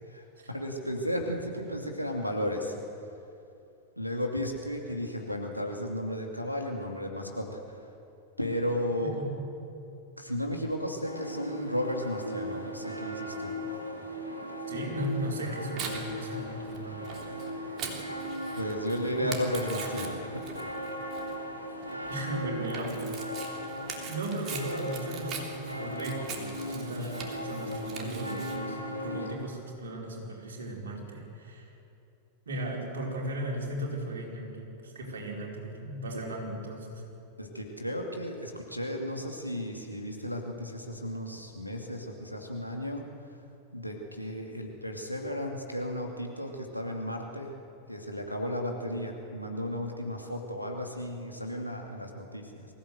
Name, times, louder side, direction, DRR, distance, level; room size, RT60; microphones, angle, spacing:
voice 1, 0.1-2.7 4.0-7.8 8.4-9.1 10.2-13.5 18.5-20.5 36.1-36.2 37.4-43.1 43.7-47.5 47.9-52.7, equal, 90° left, 1 dB, 2.6 m, -34 dB
sound 1, 11.0-29.4, equal, 85° right, 2.9 m, -38 dB
voice 2, 14.7-17.0 19.2-19.4 22.1-23.8 24.1-31.7 32.5-37.0, right 1 dB, 65° right, -1 dB, 4.8 m, -36 dB
Tearing, 15.0-28.6, right 5 dB, 35° right, 3.3 m, -43 dB
23.5 x 16.0 x 8.0 m, 2.7 s
figure-of-eight pair, 90°, 0 cm